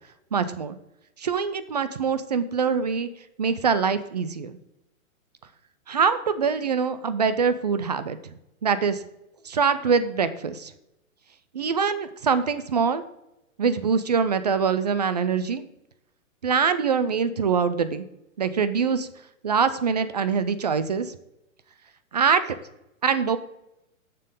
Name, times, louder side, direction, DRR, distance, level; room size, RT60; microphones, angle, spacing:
voice 1, 0.3-0.8 1.2-3.1 3.4-4.6 5.9-8.2 8.6-9.0 9.4-10.7 11.5-13.0 13.6-15.6 16.4-18.1 18.4-19.1 19.4-21.2 22.1-22.4 23.0-23.4, right 6 dB, 35° right, 13 dB, 0.4 m, -24 dB
7.0 x 6.8 x 5.3 m, 0.88 s
hypercardioid pair, 155°, 41 cm